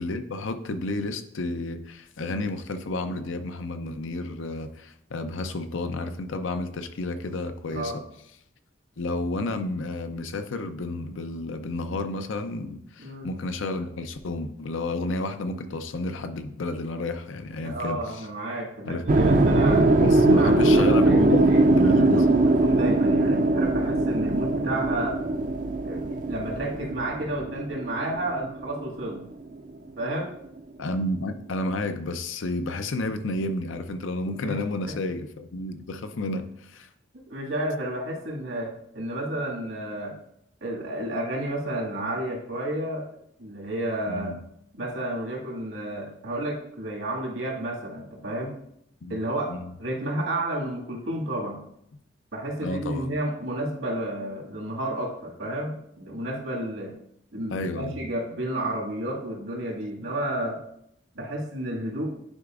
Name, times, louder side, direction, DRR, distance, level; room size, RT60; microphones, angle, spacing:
voice 1, 0.0-8.0 9.0-18.2 18.9-19.4 20.0-22.3 30.8-36.9 44.1-44.4 49.0-49.2 49.5-49.7 52.6-53.1 57.5-58.0, left 2 dB, 80° left, 9 dB, 0.6 m, -31 dB
voice 2, 17.6-19.9 20.3-25.2 25.8-29.2 30.0-30.3 34.4-34.6 34.9-35.0 37.3-40.1 40.6-43.1 43.4-44.4 44.8-48.5 49.1-51.6 52.3-56.9 57.3-60.6 61.2-62.2, right 1 dB, 90° right, -2 dB, 2.0 m, -31 dB
sound 1, 19.1-29.2, right 2 dB, 40° right, 0.4 m, -21 dB
9.8 x 4.8 x 2.5 m, 0.73 s
head